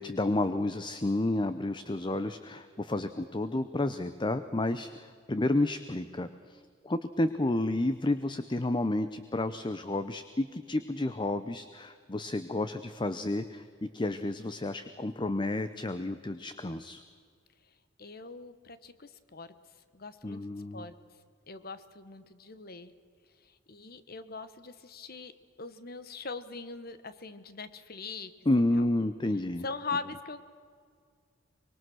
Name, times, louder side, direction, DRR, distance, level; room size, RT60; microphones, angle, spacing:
voice 1, 0.0-17.0 20.2-20.9 28.5-29.7, left 2 dB, 25° left, 11 dB, 0.7 m, -31 dB
voice 2, 18.0-19.5 19.9-21.0 21.5-22.9 23.4-25.3 25.6-28.3 28.7-28.8 29.6-30.4, left 4 dB, 50° left, 13 dB, 1.2 m, -41 dB
25.0 x 22.5 x 6.3 m, 2.1 s
head